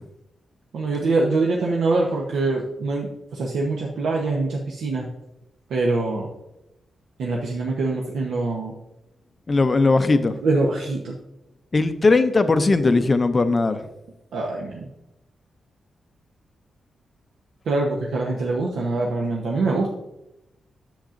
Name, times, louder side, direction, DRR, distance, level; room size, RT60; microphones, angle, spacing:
voice 1, 0.7-5.1 5.7-6.3 7.2-8.7 10.4-11.2 14.3-14.9 17.7-19.9, right 3 dB, 80° right, -2 dB, 0.9 m, -24 dB
voice 2, 9.5-10.4 11.7-13.9, left 3 dB, 25° left, 10 dB, 0.4 m, -19 dB
10.0 x 7.1 x 2.5 m, 0.93 s
wide cardioid pair, 175°, 0 cm